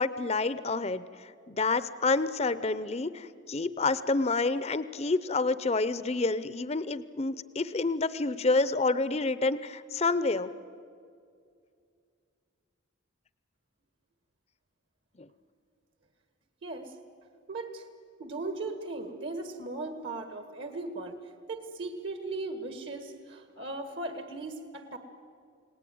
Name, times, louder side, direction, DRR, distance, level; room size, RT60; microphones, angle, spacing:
voice 1, 0.0-10.5 15.2-15.3, left 3 dB, 30° left, 14 dB, 0.6 m, -28 dB
voice 2, 16.6-16.9 17.5-17.8 18.2-21.2 21.5-25.0, right 2 dB, 60° right, 7 dB, 1.7 m, -37 dB
29.5 x 19.0 x 9.4 m, 2.3 s
head